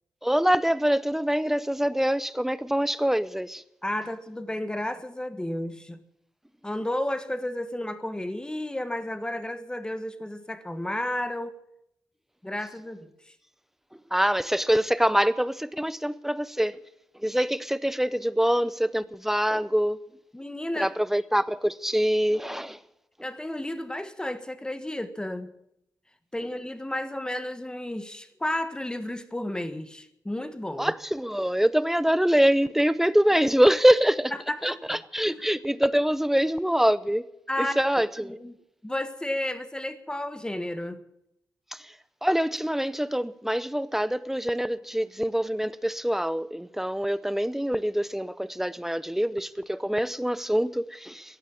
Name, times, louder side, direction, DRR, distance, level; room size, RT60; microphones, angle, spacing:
voice 1, 0.2-3.6 14.1-16.8 17.2-20.0 20.8-22.8 30.8-34.3 34.6-37.3 37.6-38.4 42.2-51.4, equal, 5° right, 0.6 m, -24 dB
voice 2, 3.8-6.0 6.6-11.5 12.4-13.1 20.3-20.9 23.2-25.5 26.3-30.9 34.5-35.5 37.5-37.7 38.2-38.5 38.8-41.0, left 1 dB, 10° left, 1.5 m, -32 dB
16.5 x 11.0 x 7.3 m
cardioid pair, 80°, 7 cm